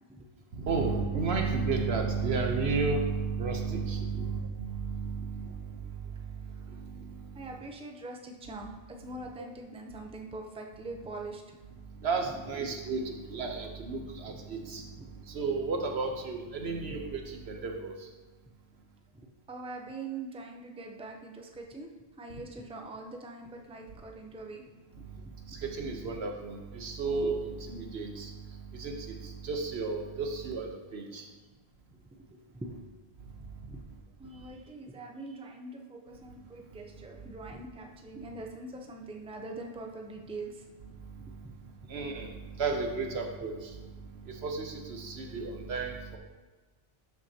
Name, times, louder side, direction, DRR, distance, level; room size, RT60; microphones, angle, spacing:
voice 1, 0.5-5.5 9.4-9.5 12.0-14.8 15.3-17.9 25.5-28.3 28.7-31.2 41.9-42.3 42.6-43.7 44.3-46.2, right 4 dB, 80° right, 3 dB, 1.2 m, -32 dB
voice 2, 6.7-7.0 7.3-11.6 15.0-15.1 16.9-17.0 19.2-21.9 22.2-24.7 25.3-25.6 32.1-32.9 33.7-33.8 34.2-40.6, right 2 dB, 5° right, 2 dB, 0.6 m, -43 dB
12.0 x 6.0 x 2.9 m, 1.3 s
omnidirectional pair, 1.1 m